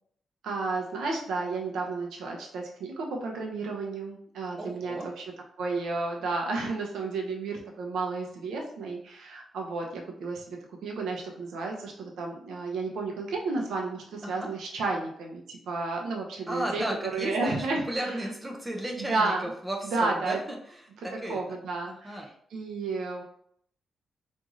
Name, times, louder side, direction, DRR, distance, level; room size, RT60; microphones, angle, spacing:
voice 1, 0.4-5.3 5.6-10.6 10.8-18.2 19.0-19.5 19.9-20.4 21.3-22.2 22.5-23.2, right 3 dB, 85° right, 1 dB, 0.6 m, -32 dB
voice 2, 4.6-5.1 14.2-14.5 16.5-21.4 21.9-22.3, right 1 dB, 10° right, 1 dB, 0.4 m, -35 dB
3.0 x 2.5 x 2.4 m, 0.67 s
wide cardioid pair, 175°, 0 cm